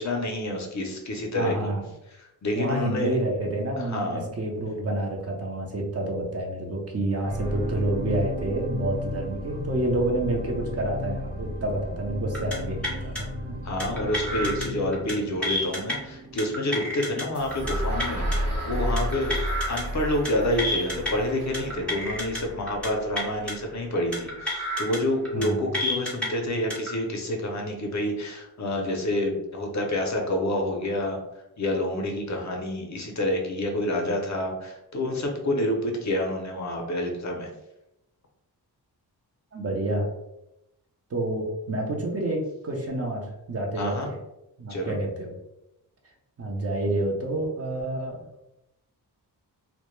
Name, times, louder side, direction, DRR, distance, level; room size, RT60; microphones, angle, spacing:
voice 1, 0.0-1.5 2.2-3.1 3.8-4.2 13.6-18.2 18.7-19.4 19.7-31.2 31.6-37.5 43.8-44.1 44.7-44.9, left 1 dB, 45° left, 1 dB, 0.5 m, -28 dB
voice 2, 1.3-1.9 2.5-13.6 25.3-25.7 39.5-40.1 41.1-44.1 44.6-45.4 46.4-48.3, right 1 dB, 40° right, 0 dB, 0.5 m, -28 dB
sound 1, 7.2-19.6 20.2-20.3, left 1 dB, 75° right, 0.7 m, -36 dB
sound 2, 12.3-12.6 12.8-13.2 13.8-14.7 14.9-15.1 15.4-15.9 16.4-17.2 17.5-17.7 18.0-18.4 19.0-19.8 20.1-20.3 20.6-21.1 21.5-22.4 22.7-22.9 23.1-23.5 24.1-25.0 25.2-25.5 25.7-26.3 26.7-26.9, left 1 dB, 5° left, 0.6 m, -30 dB
sound 3, 17.3-25.3, right 1 dB, 55° right, 0.9 m, -32 dB
2.1 x 2.1 x 3.0 m, 0.88 s
wide cardioid pair, 100°, 40 cm